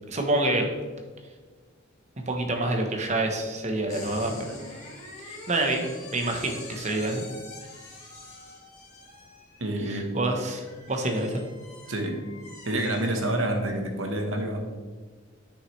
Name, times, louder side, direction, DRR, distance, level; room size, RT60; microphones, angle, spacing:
voice 1, 0.1-0.7 2.3-4.3 5.3-5.9 6.1-7.2 9.8-11.4, right 2 dB, 35° right, 3 dB, 1.0 m, -27 dB
sound 1, 3.9-13.8, left 2 dB, 35° left, 1.9 m, -45 dB
voice 2, 9.6-10.1 11.9-12.2 12.6-14.6, right 1 dB, 75° right, 4 dB, 1.2 m, -28 dB
8.1 x 6.3 x 3.2 m, 1.4 s
head